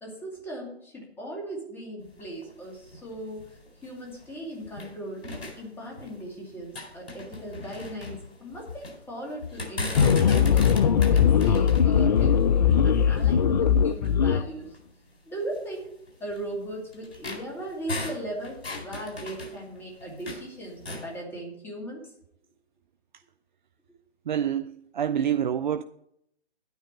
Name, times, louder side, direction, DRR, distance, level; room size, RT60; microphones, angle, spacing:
voice 1, 0.0-14.7 15.2-15.9 16.2-22.0, right 1 dB, 5° left, 2.4 m, -38 dB
sound 1, 2.0-4.9 5.2-6.3 6.6-9.0 9.4-13.4 14.0-14.1 14.6-14.8 15.5-20.5 20.8-21.1, left 2 dB, 75° left, 4.2 m, -38 dB
sound 2, 9.9-14.4, left 7 dB, 40° left, 0.5 m, -20 dB
voice 2, 24.3-25.8, right 9 dB, 50° right, 0.5 m, -27 dB
11.0 x 9.4 x 4.4 m
figure-of-eight pair, 145°, 32 cm